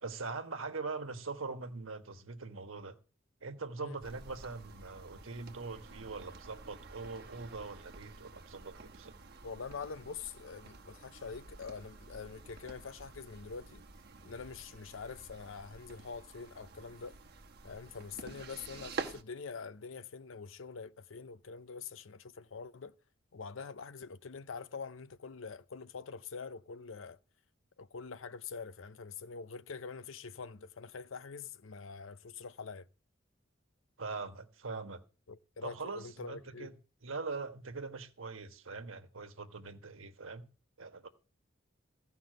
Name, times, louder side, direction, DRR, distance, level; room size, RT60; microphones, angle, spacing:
voice 1, 0.0-3.0 3.4-9.1 34.0-35.0 35.6-36.7 37.0-40.5 40.8-41.1, right 4 dB, 85° right, 1.3 m, -42 dB
sound 1, 4.0-19.2, right 3 dB, 55° right, 1.2 m, -49 dB
voice 2, 9.4-13.8 14.2-17.2 17.6-22.9 23.3-27.2 27.8-32.9 35.3-36.7, left 5 dB, 75° left, 0.6 m, -45 dB
15.0 x 5.6 x 7.7 m
head